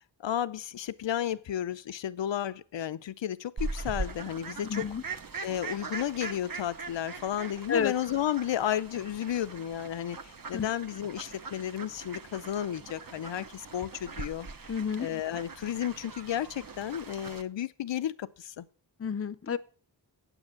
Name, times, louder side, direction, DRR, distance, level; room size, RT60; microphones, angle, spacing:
voice 1, 0.2-4.9 5.4-14.5 15.0-18.7, left 10 dB, 85° left, 0.6 m, -33 dB
Fowl, 3.6-17.4, right 4 dB, 50° right, 1.1 m, -41 dB
voice 2, 4.6-5.0 7.7-7.9 10.5-10.7 14.7-15.1 19.0-19.6, left 7 dB, 35° left, 0.6 m, -30 dB
9.0 x 8.0 x 7.5 m
wide cardioid pair, 95°, 43 cm